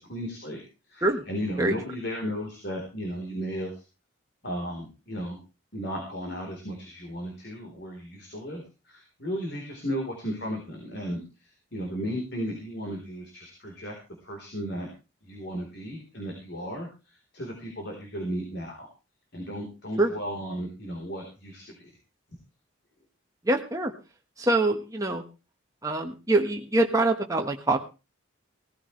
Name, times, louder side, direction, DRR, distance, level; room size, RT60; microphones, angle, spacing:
voice 1, 0.1-0.6 0.9-3.7 4.4-5.4 5.7-8.6 8.9-11.2 11.7-13.9 14.2-14.9 15.3-16.9 17.3-18.9 19.3-21.9, equal, 50° left, 1 dB, 4.0 m, -34 dB
voice 2, 23.5-23.9 24.4-25.2 25.8-27.8, right 2 dB, 15° right, 2 dB, 1.3 m, -24 dB
17.5 x 14.5 x 3.3 m, 0.31 s
head